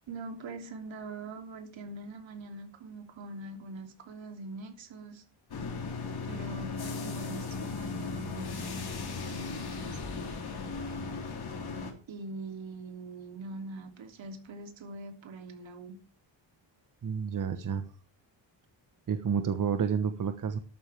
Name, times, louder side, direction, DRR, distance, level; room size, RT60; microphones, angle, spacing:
voice 1, 0.1-5.2 6.2-8.8 9.3-10.0 12.1-16.0, right 2 dB, 80° right, 5 dB, 3.1 m, -43 dB
sound 1, 5.5-11.9, left 4 dB, 55° left, 3.3 m, -37 dB
voice 2, 17.0-17.8 19.1-20.6, right 7 dB, 45° right, 9 dB, 1.2 m, -30 dB
13.0 x 12.0 x 3.5 m, 0.35 s
wide cardioid pair, 165°, 46 cm